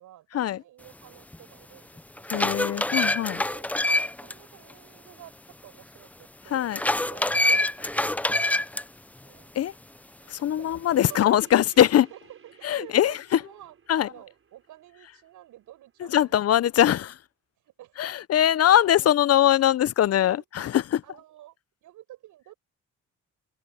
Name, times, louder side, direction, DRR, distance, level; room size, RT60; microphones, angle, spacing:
voice 1, 0.0-2.5 3.2-3.7 4.2-9.5 10.2-10.8 11.1-11.4 11.7-11.8 12.1-17.1 17.6-19.0 20.1-20.3 21.0-21.6 21.8-22.5, right 14 dB, 85° right, 7.6 m, -50 dB
sound 1, 1.3-1.4 2.0-4.3 4.7-4.8 6.7-8.8, left 1 dB, 5° left, 0.5 m, -25 dB
voice 2, 2.3-3.4 6.5-6.8 9.5-9.7 10.3-12.1 12.6-13.4 13.9-14.1 16.1-17.1 18.0-21.0, left 11 dB, 55° left, 0.6 m, -22 dB
sound 2, 11.0-16.0, right 6 dB, 45° right, 4.4 m, -55 dB
cardioid pair, 90°, 30 cm